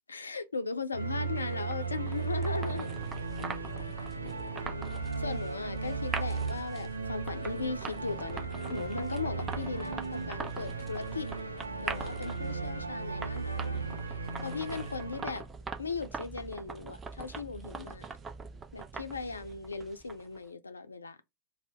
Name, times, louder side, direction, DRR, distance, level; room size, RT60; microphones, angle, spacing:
voice 1, 0.1-2.9 4.2-4.9 5.2-11.3 11.8-13.6 14.4-15.4 15.8-18.1 18.7-21.2, left 4 dB, 75° left, 0.5 m, -38 dB
sound 1, 0.9-15.4, right 4 dB, 80° right, 0.4 m, -36 dB
sound 2, 1.4-20.4, right 5 dB, 20° right, 0.4 m, -43 dB
2.7 x 2.0 x 3.5 m
figure-of-eight pair, 90°, 0 cm